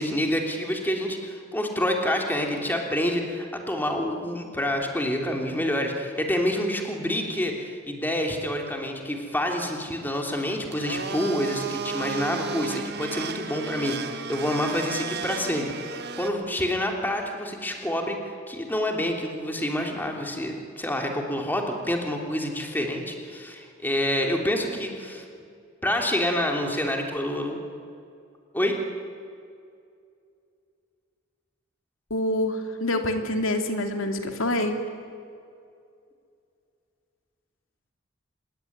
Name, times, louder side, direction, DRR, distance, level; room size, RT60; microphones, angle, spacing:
voice 1, 0.0-25.2 25.8-27.6 28.5-28.7, left 1 dB, 10° left, 2 dB, 3.2 m, -27 dB
Domestic sounds home sounds, 10.7-16.3, right 5 dB, 55° right, 1.8 m, -33 dB
voice 2, 32.1-34.8, left 1 dB, 80° left, 5 dB, 2.5 m, -26 dB
26.0 x 21.5 x 9.4 m, 2.4 s
head